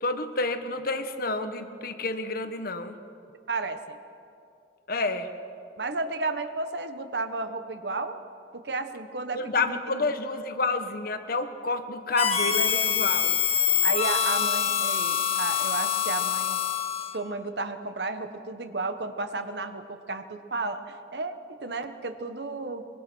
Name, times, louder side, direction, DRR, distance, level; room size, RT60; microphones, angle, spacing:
voice 1, 0.0-3.0 4.9-5.3 9.3-13.4, left 3 dB, 55° left, 9 dB, 1.3 m, -29 dB
voice 2, 3.5-4.0 5.8-8.2 8.5-10.0 13.8-16.6 17.1-22.9, right 3 dB, 70° right, 9 dB, 1.3 m, -33 dB
Harmonica, 12.2-17.2, left 9 dB, 35° left, 1.4 m, -25 dB
24.0 x 21.5 x 6.3 m, 2.6 s
head